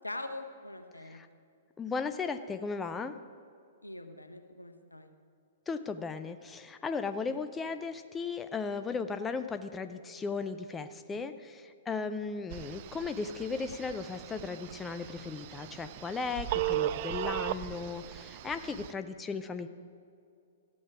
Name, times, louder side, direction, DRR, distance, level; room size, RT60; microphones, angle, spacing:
voice 1, 0.0-1.2 3.8-5.1 7.3-7.4 11.1-11.2, left 2 dB, 90° left, 7 dB, 0.9 m, -43 dB
voice 2, 1.8-3.2 5.7-19.7, left 4 dB, 15° left, 10 dB, 0.4 m, -36 dB
Telephone, 12.5-18.9, right 14 dB, 45° right, 0.4 m, -37 dB
14.0 x 8.5 x 4.8 m, 2.5 s
figure-of-eight pair, 110°, 0 cm